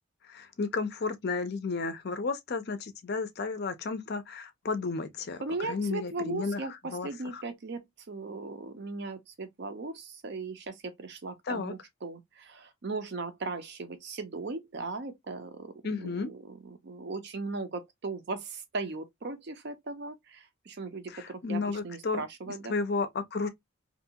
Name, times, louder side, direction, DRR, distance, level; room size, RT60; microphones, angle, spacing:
voice 1, 0.3-7.4 11.5-11.7 15.8-16.3 21.1-23.5, left 4 dB, 45° left, 0.4 m, -33 dB
voice 2, 5.4-22.7, right 3 dB, 50° right, 0.5 m, -38 dB
2.6 x 2.3 x 2.7 m
head